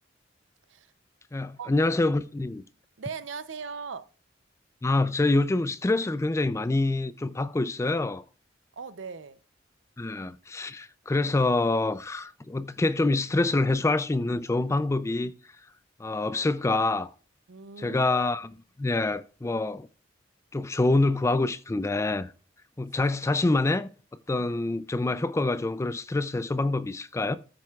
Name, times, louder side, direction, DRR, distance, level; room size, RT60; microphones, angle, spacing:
voice 1, 1.3-2.6 4.8-8.2 10.0-15.3 16.0-17.1 17.8-19.9 20.5-22.3 22.8-23.9 24.3-27.4, left 2 dB, 15° left, 0.3 m, -26 dB
voice 2, 3.0-4.1 8.8-9.4 17.5-18.1, right 5 dB, 75° right, 0.6 m, -39 dB
14.0 x 7.6 x 2.3 m
head